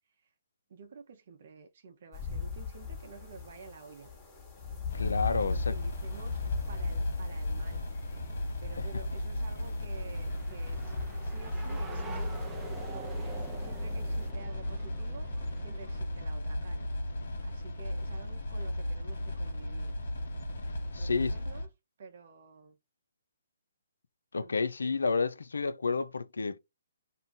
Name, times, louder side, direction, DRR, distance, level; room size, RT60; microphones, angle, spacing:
voice 1, 0.7-4.1 5.4-6.4 6.7-7.8 8.6-12.4 12.9-15.3 15.6-16.9 17.2-19.9 21.0-21.7 22.0-22.8 24.4-24.5, right 5 dB, 55° right, 0.6 m, -50 dB
sound 1, 2.1-14.3, left 6 dB, 15° left, 1.2 m, -40 dB
voice 2, 4.9-5.7 20.9-21.3 24.3-26.6, left 4 dB, 85° left, 0.4 m, -30 dB
sound 2, 4.9-21.7, left 1 dB, 65° left, 1.0 m, -36 dB
sound 3, 8.3-16.0, right 3 dB, 10° right, 0.5 m, -47 dB
2.5 x 2.3 x 3.8 m
hypercardioid pair, 145°, 0 cm